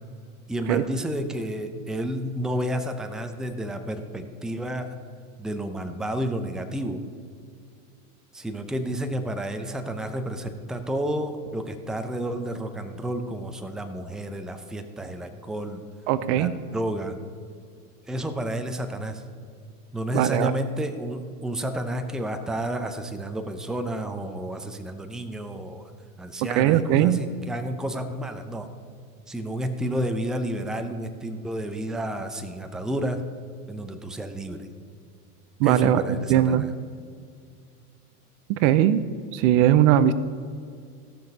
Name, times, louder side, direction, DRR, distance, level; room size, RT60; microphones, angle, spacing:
voice 1, 0.5-4.9 5.4-7.0 8.3-15.8 16.3-17.2 18.1-19.2 19.9-25.9 26.2-28.7 29.3-33.2 33.7-34.7 35.6-36.7, right 1 dB, ahead, 7 dB, 0.6 m, -31 dB
voice 2, 16.1-16.5 20.1-20.5 26.5-27.2 35.6-36.0 36.3-36.7 38.5-39.0 39.3-40.1, right 11 dB, 50° right, 14 dB, 0.6 m, -19 dB
16.5 x 6.2 x 5.4 m, 2.2 s
hypercardioid pair, 110°, 45 cm